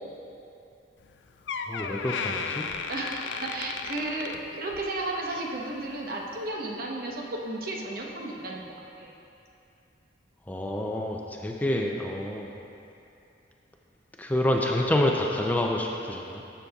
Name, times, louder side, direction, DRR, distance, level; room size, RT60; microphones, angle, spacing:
Door, 1.0-1.1 1.5-5.0 5.3-5.6 6.3-6.4, left 5 dB, 85° left, 0.4 m, -34 dB
voice 1, 1.7-2.7 10.5-12.6 14.2-16.4, left 1 dB, 10° left, 0 dB, 0.4 m, -28 dB
voice 2, 2.9-9.1, right 2 dB, 55° right, -1 dB, 0.9 m, -33 dB
13.0 x 6.8 x 2.3 m, 2.7 s
head